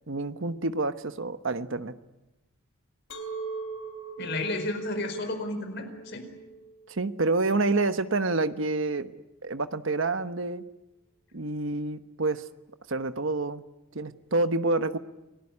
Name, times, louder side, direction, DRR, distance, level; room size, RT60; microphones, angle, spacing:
voice 1, 0.1-1.9 6.9-9.1 9.4-10.6 11.3-12.4 12.9-13.6 13.9-15.0, right 3 dB, 60° right, 11 dB, 1.1 m, -28 dB
Chink clink, 3.1-8.3, right 4 dB, 70° left, 3.8 m, -40 dB
voice 2, 4.2-6.3, left 2 dB, 50° left, 6 dB, 4.8 m, -32 dB
29.0 x 18.5 x 9.8 m, 1.0 s
head